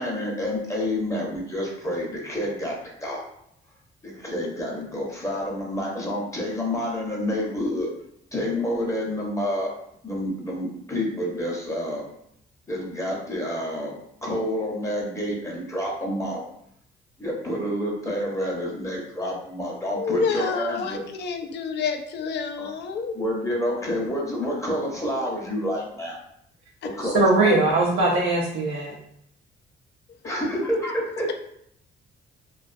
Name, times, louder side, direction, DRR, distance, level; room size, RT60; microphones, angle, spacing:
voice 1, 0.0-2.8 3.0-3.2 4.0-7.9 8.3-9.7 10.0-12.0 12.7-13.9 14.2-16.4 17.2-21.0 22.6-22.7 23.1-26.2 27.0-27.6 30.2-31.3, left 1 dB, 15° left, -2 dB, 0.7 m, -28 dB
voice 2, 20.0-23.2 26.8-26.9 30.2-30.5, left 5 dB, 60° left, 6 dB, 0.4 m, -28 dB
voice 3, 27.0-28.9, right 2 dB, 75° right, -4 dB, 0.5 m, -21 dB
2.3 x 2.3 x 2.5 m, 0.70 s
cardioid pair, 90°, 20 cm